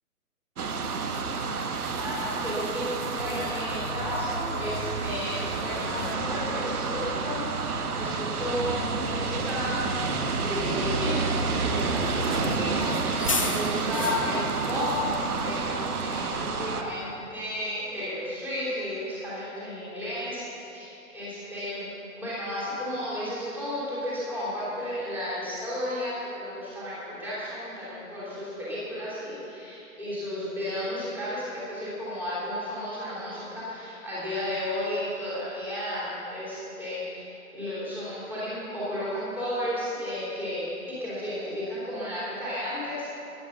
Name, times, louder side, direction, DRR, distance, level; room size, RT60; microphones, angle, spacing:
sound 1, 0.6-16.8, right 5 dB, 80° right, 1.4 m, -30 dB
voice 1, 2.0-9.8 10.3-15.0 15.4-21.9 22.2-40.7 41.0-43.1, left 1 dB, 5° right, -10 dB, 3.2 m, -33 dB
Bus, 3.2-16.5, left 1 dB, 25° left, 0.5 m, -36 dB
14.5 x 10.5 x 7.0 m, 2.8 s
hypercardioid pair, 170°, 44 cm